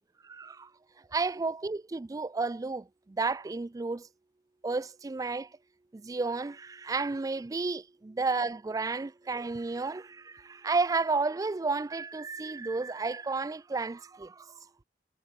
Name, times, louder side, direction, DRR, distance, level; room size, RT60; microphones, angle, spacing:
voice 1, 0.2-0.7 1.1-4.1 4.6-5.5 5.9-14.6, right 3 dB, 20° right, 0.3 m, -32 dB
head